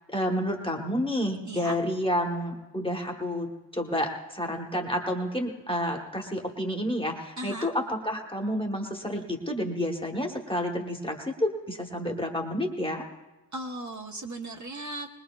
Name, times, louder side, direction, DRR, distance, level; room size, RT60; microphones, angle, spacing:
voice 1, 0.1-13.0, equal, 10° left, 1 dB, 1.2 m, -30 dB
voice 2, 1.4-1.8 7.4-7.7 13.5-15.1, right 1 dB, 40° right, 2 dB, 1.1 m, -36 dB
21.5 x 20.5 x 2.3 m, 1.1 s
wide cardioid pair, 135°, 43 cm